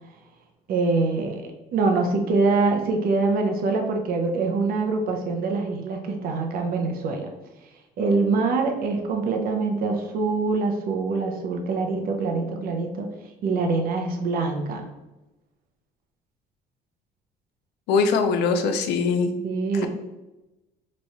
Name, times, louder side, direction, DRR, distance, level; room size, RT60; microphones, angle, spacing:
voice 1, 0.7-7.3 8.0-13.1 13.4-14.8 19.4-19.9, right 3 dB, 60° right, 3 dB, 0.7 m, -24 dB
voice 2, 17.9-19.3, left 4 dB, 85° left, 7 dB, 0.5 m, -21 dB
3.1 x 2.3 x 4.1 m, 1.0 s
cardioid pair, 110°, 17 cm